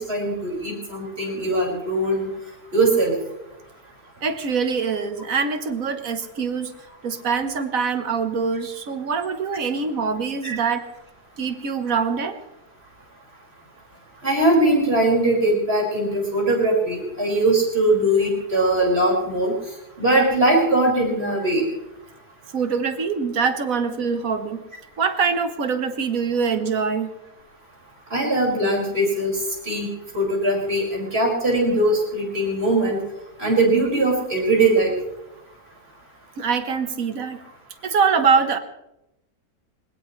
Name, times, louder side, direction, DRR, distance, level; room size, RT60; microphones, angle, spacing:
voice 1, 0.0-2.3 2.7-3.1 10.4-10.6 14.2-19.5 20.0-21.6 28.1-29.3 29.6-29.9 30.1-33.0 33.4-34.9, right 1 dB, 40° right, -3 dB, 5.9 m, -20 dB
voice 2, 4.2-6.7 7.0-10.9 11.4-12.4 22.5-24.6 25.0-27.1 36.4-37.4 37.8-38.6, right 5 dB, 60° right, 9 dB, 1.6 m, -24 dB
21.0 x 20.0 x 3.2 m, 0.91 s
omnidirectional pair, 1.7 m